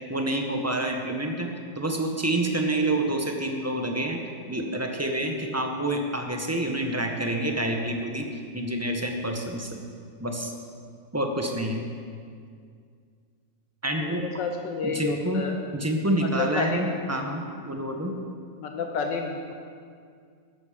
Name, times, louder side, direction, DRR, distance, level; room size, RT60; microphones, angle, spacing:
voice 1, 0.1-4.2 4.5-8.3 8.5-9.8 10.2-10.5 11.1-11.8 13.8-14.2 14.8-15.4 15.7-18.1, right 1 dB, 10° right, 2 dB, 1.0 m, -28 dB
voice 2, 14.2-15.5 16.2-17.0 18.6-19.5, left 4 dB, 75° left, 3 dB, 1.6 m, -30 dB
14.0 x 12.5 x 5.2 m, 2.2 s
omnidirectional pair, 2.0 m